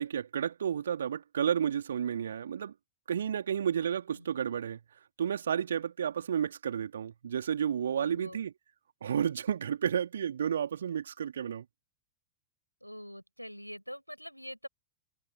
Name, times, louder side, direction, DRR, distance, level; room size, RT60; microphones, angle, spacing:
voice 1, 0.0-2.7 3.1-4.8 5.2-8.5 9.0-11.6, right 8 dB, 65° right, 3.2 m, -31 dB
voice 2, 8.0-8.4 12.8-14.7, equal, 90° left, 7.2 m, -44 dB
figure-of-eight pair, 90°, 0 cm